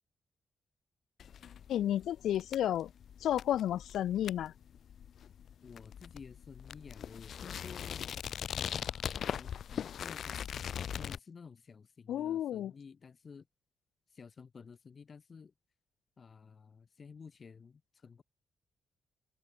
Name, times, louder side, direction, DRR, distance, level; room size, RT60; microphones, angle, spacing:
sound 1, 1.2-11.2, left 8 dB, 70° left, 1.5 m, -41 dB
voice 1, 1.7-2.9 3.2-4.5 12.1-12.7, left 11 dB, 90° left, 0.5 m, -32 dB
voice 2, 5.6-8.2 8.6-10.5 10.9-13.5 14.1-15.5 16.2-18.2, left 5 dB, 45° left, 3.7 m, -52 dB
open air
cardioid pair, 105°, 0 cm